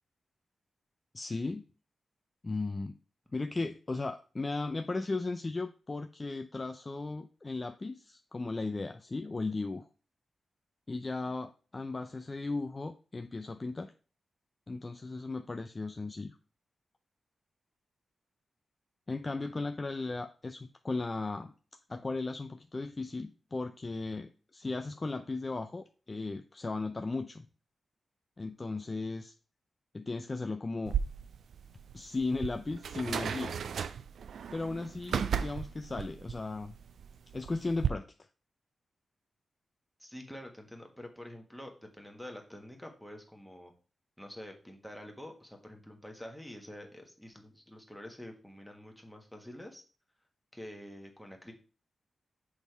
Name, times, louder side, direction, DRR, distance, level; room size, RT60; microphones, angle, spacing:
voice 1, 1.1-1.6 2.4-3.0 3.3-9.9 10.9-13.9 14.7-16.3 19.1-21.5 21.9-27.5 28.4-29.3 29.9-30.9 31.9-33.6 34.5-36.8 37.3-38.1, left 3 dB, 30° left, 7 dB, 0.4 m, -36 dB
sound 1, 30.8-37.9, right 8 dB, 85° right, 0.3 m, -35 dB
voice 2, 40.0-43.7 44.2-49.8 50.5-51.5, left 1 dB, ahead, 2 dB, 1.4 m, -47 dB
6.2 x 3.6 x 4.6 m, 0.37 s
wide cardioid pair, 95°, 0 cm